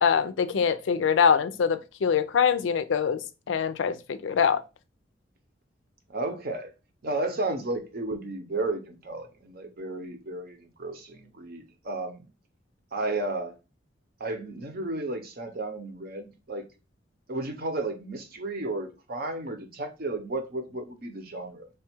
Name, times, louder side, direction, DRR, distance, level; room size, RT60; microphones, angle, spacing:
voice 1, 0.0-4.6, left 6 dB, 80° left, 0.4 m, -24 dB
voice 2, 6.1-6.7 7.0-12.3 12.9-13.5 14.2-16.6 17.3-21.7, right 2 dB, 55° right, 0.7 m, -33 dB
3.4 x 2.3 x 4.3 m
head